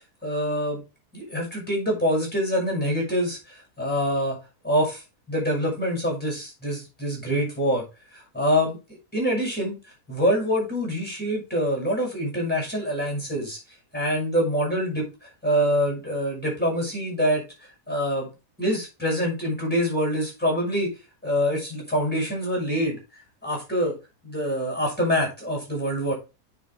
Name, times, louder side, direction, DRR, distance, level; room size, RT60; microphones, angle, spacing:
voice 1, 0.2-0.8 1.1-4.4 4.6-5.0 5.3-7.8 8.1-8.8 9.1-9.8 10.1-13.6 13.9-17.4 17.9-18.3 18.6-20.9 21.2-23.0 23.4-24.0 24.2-26.1, equal, 5° left, -1 dB, 5.7 m, -25 dB
9.3 x 5.5 x 3.6 m, 0.28 s
omnidirectional pair, 1.7 m